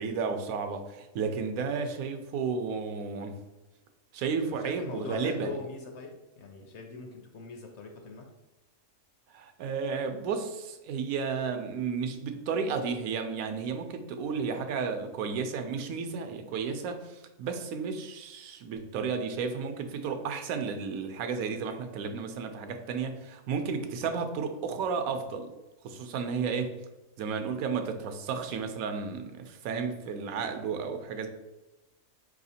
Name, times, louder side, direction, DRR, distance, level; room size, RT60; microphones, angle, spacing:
voice 1, 0.0-3.4 4.1-5.5 9.3-25.5 25.8-26.8 27.2-31.3, right 5 dB, 80° right, 6 dB, 1.0 m, -33 dB
voice 2, 4.5-8.3, left 3 dB, 65° left, 3 dB, 0.7 m, -41 dB
4.8 x 3.1 x 2.7 m, 1.0 s
omnidirectional pair, 1.5 m